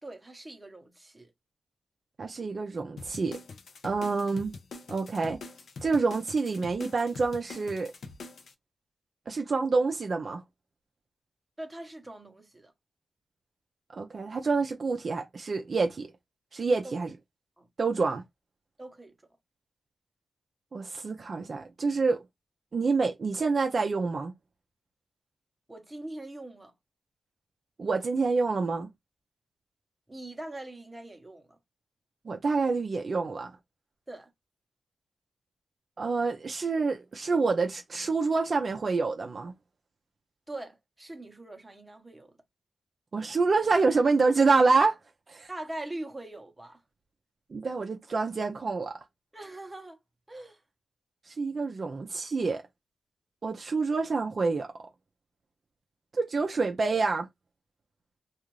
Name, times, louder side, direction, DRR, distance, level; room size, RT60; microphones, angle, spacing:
voice 1, 0.0-1.3 11.6-12.7 16.8-17.0 17.6-17.7 18.8-19.2 25.7-26.7 30.1-31.6 34.1-34.3 40.5-42.3 45.5-46.8 49.3-50.0 50.3-50.6, right 1 dB, 10° right, 0.8 m, -42 dB
voice 2, 2.2-3.4 3.8-4.5 4.9-5.4 5.8-7.9 9.3-10.4 14.0-16.1 16.5-17.1 17.8-18.2 20.7-22.2 22.7-24.3 27.8-28.9 32.3-33.5 36.0-39.5 43.1-45.0 45.3-45.5 47.5-49.0 51.3-52.6 53.4-54.9 56.1-57.3, right 4 dB, 45° right, 0.5 m, -27 dB
sound 1, 3.0-8.5, left 3 dB, 70° left, 0.5 m, -44 dB
2.4 x 2.4 x 3.0 m
wide cardioid pair, 120°, 0 cm